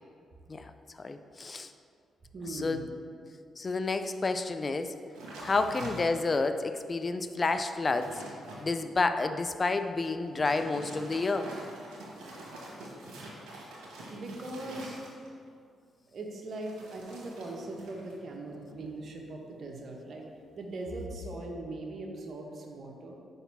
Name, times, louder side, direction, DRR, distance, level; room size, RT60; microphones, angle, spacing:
voice 1, 1.0-1.7 2.5-2.8 3.6-4.9 5.4-8.2 8.6-11.5, left 3 dB, 35° left, 9 dB, 0.4 m, -30 dB
voice 2, 2.3-2.9 13.8-15.1 16.1-20.3 20.6-23.1, right 2 dB, 60° right, 1 dB, 1.0 m, -40 dB
sound 1, 5.1-6.5 7.0-7.1 7.5-8.7 10.2-15.5 16.5-18.2 18.5-18.9, right 1 dB, 85° right, 1.4 m, -46 dB
5.0 x 4.0 x 5.8 m, 2.2 s
supercardioid pair, 65°, 0 cm